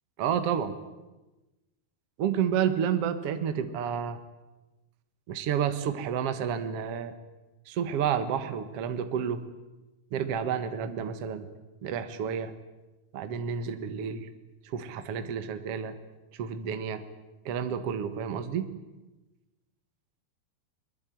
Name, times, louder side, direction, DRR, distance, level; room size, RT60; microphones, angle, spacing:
voice 1, 0.2-0.7 2.2-4.2 5.3-7.1 7.7-9.4 10.1-11.5 11.8-12.5 13.1-14.3 14.7-15.9 16.4-17.0 17.4-18.7, right 8 dB, 80° right, 10 dB, 1.3 m, -30 dB
22.5 x 21.5 x 9.2 m, 1.1 s
omnidirectional pair, 5.1 m